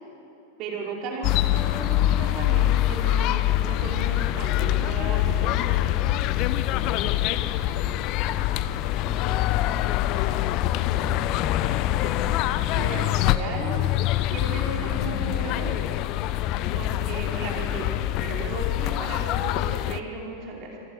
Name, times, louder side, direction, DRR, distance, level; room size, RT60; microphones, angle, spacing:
voice 1, 0.6-5.9 9.2-9.4 12.7-13.8 14.2-15.8 16.7-20.8, right 3 dB, 40° right, -1 dB, 4.8 m, -35 dB
sound 1, 1.2-20.0, left 13 dB, 40° left, 0.9 m, -24 dB
voice 2, 8.2-11.0, right 1 dB, 10° right, -2 dB, 4.1 m, -46 dB
27.5 x 26.0 x 6.4 m, 2.8 s
figure-of-eight pair, 90°, 0 cm